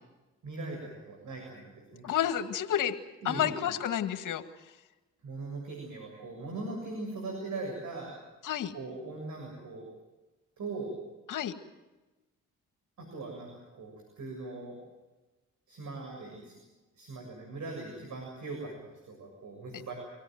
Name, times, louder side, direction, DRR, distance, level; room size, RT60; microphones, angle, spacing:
voice 1, 0.4-2.1 3.2-3.7 5.2-8.1 8.7-9.9 10.6-10.9 13.0-14.8 15.7-16.6 17.0-19.9, right 3 dB, 65° right, 1 dB, 7.2 m, -40 dB
voice 2, 2.0-3.0 3.2-4.4 8.4-8.7 11.3-11.5, left 10 dB, 75° left, 7 dB, 1.9 m, -30 dB
24.5 x 17.0 x 9.3 m, 1.1 s
supercardioid pair, 60°, 32 cm